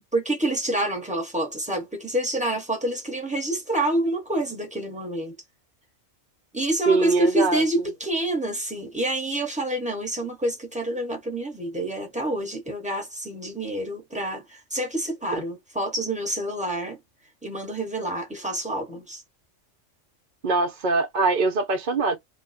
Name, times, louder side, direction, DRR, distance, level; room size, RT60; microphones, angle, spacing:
voice 1, 0.1-5.4 6.5-17.0 17.4-19.2, right 1 dB, 5° right, 1.0 m, -27 dB
voice 2, 6.9-7.6 20.4-22.2, right 3 dB, 45° right, 0.8 m, -22 dB
2.8 x 2.3 x 4.1 m
omnidirectional pair, 1.3 m